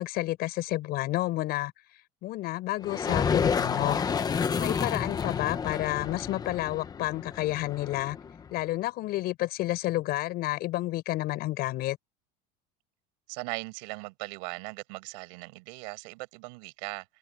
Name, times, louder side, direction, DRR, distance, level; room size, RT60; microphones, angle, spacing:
voice 1, 0.0-1.7 2.2-4.0 4.6-8.2 8.5-12.0, left 17 dB, 50° left, 6.4 m, -30 dB
sound 1, 2.8-8.5, left 6 dB, 20° left, 1.0 m, -30 dB
voice 2, 13.3-17.1, right 32 dB, 70° right, 7.6 m, -39 dB
cardioid pair, 155°, 21 cm